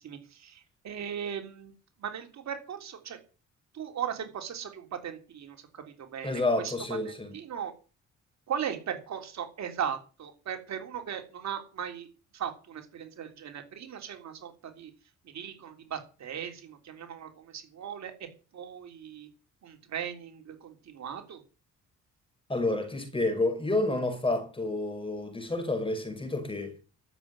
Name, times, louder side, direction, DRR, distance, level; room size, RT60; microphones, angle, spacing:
voice 1, 0.0-1.7 2.0-3.2 3.7-6.3 6.6-6.7 7.0-7.7 8.5-12.1 12.3-14.9 15.3-18.3 18.5-19.3 19.6-21.4, right 8 dB, 65° right, 3.5 m, -38 dB
voice 2, 6.2-7.3 22.5-26.8, left 2 dB, 15° left, 5.8 m, -29 dB
13.0 x 8.0 x 10.0 m
cardioid pair, 90°, 30 cm